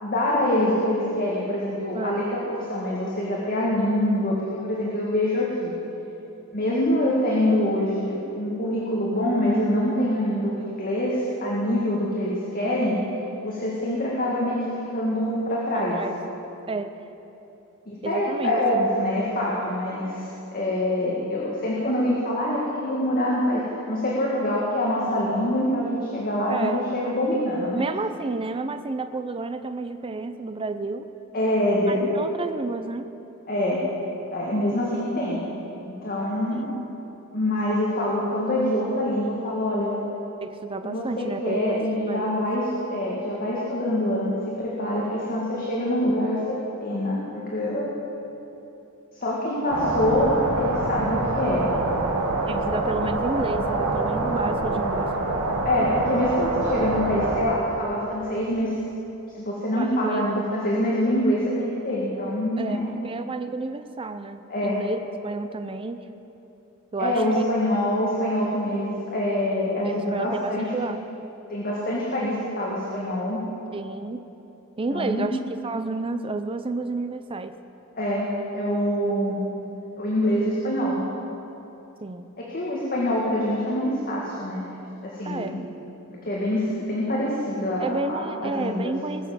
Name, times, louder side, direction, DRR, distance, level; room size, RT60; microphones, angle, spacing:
voice 1, 0.0-2.4 2.7-4.4 4.6-5.7 6.5-13.0 13.4-14.6 14.9-16.0 17.9-20.2 20.5-27.8 31.3-32.3 33.5-33.8 34.3-35.4 35.8-36.7 37.3-40.0 40.8-47.9 49.2-51.7 55.6-58.8 59.3-62.9 64.5-64.8 67.0-70.7 71.5-73.4 74.9-75.3 78.0-79.4 80.0-81.0 82.4-84.6 85.0-85.6 86.3-88.9, left 1 dB, 45° left, -5 dB, 2.0 m, -25 dB
voice 2, 1.9-2.3 15.7-16.2 16.7-17.0 18.0-18.5 26.5-26.8 27.7-31.1 31.9-33.1 36.5-36.6 40.4-42.5 52.5-55.2 59.8-60.4 62.6-66.0 66.9-67.5 69.8-71.0 73.7-74.3 74.8-77.5 82.0-82.2 85.2-85.6 87.8-89.3, right 3 dB, 25° right, 9 dB, 0.5 m, -31 dB
sound 1, 49.7-57.4, right 2 dB, 80° right, 1.8 m, -25 dB
20.5 x 7.2 x 7.2 m, 3.0 s
head